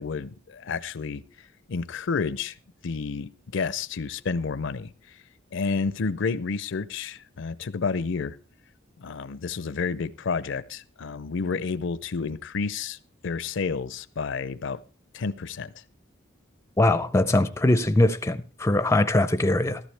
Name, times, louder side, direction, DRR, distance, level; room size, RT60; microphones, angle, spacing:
voice 1, 0.0-2.6 2.8-5.2 5.5-8.4 9.0-13.0 13.2-14.8 15.1-15.7, left 5 dB, 65° left, 0.5 m, -30 dB
voice 2, 16.8-19.8, left 1 dB, 15° left, 0.5 m, -21 dB
14.5 x 12.5 x 3.3 m
head